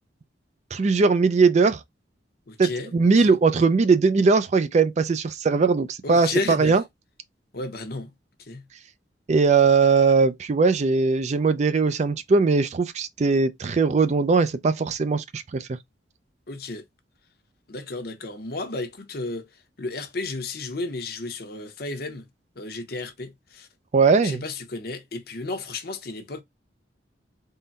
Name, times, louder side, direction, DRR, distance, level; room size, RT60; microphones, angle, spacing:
voice 1, 0.7-1.8 2.6-6.8 9.3-15.8 23.9-24.4, right 4 dB, 40° right, 0.4 m, -20 dB
voice 2, 2.5-2.9 3.2-3.3 6.0-6.7 7.5-8.1 8.5-8.6 16.5-16.8 17.7-19.4 19.8-22.2 22.6-23.3 23.6-23.7 24.2-26.4, left 3 dB, 60° left, 0.8 m, -32 dB
3.8 x 2.1 x 4.0 m
head